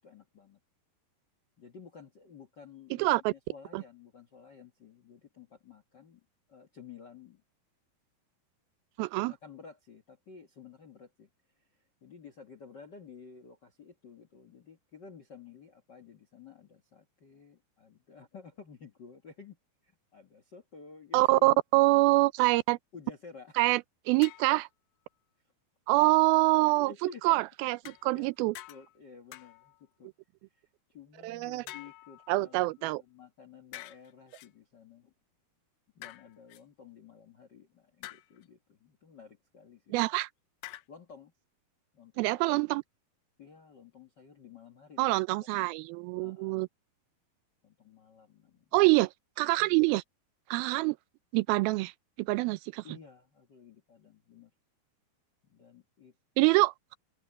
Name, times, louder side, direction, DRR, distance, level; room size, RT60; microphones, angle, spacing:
voice 1, 0.0-0.6 1.6-7.4 9.0-11.3 11.6-19.6 19.8-21.5 22.9-23.6 26.6-27.4 28.1-30.1 30.5-35.1 35.9-40.0 40.9-41.3 41.9-42.6 43.4-45.1 45.4-45.7 46.2-46.6 47.6-48.8 49.6-49.8 52.8-54.5 55.4-56.5, left 5 dB, 55° left, 1.2 m, -52 dB
voice 2, 3.0-3.3 3.7-3.8 9.0-9.3 21.1-22.8 23.6-23.8 24.1-24.7 25.9-26.9 27.2-28.5 31.2-31.6 32.3-33.0 39.9-40.3 42.2-42.8 45.0-46.7 48.7-49.1 49.4-50.0 50.5-51.0 51.3-51.9 52.2-52.8 56.4-57.0, right 21 dB, 85° right, 2.4 m, -25 dB
sound 1, 24.2-24.6 27.9-28.3 28.5-29.0 29.3-29.8 31.7-32.7 33.7-34.5 36.0-36.6 38.0-38.5 40.6-40.8, left 16 dB, 80° left, 2.4 m, -47 dB
omnidirectional pair, 4.4 m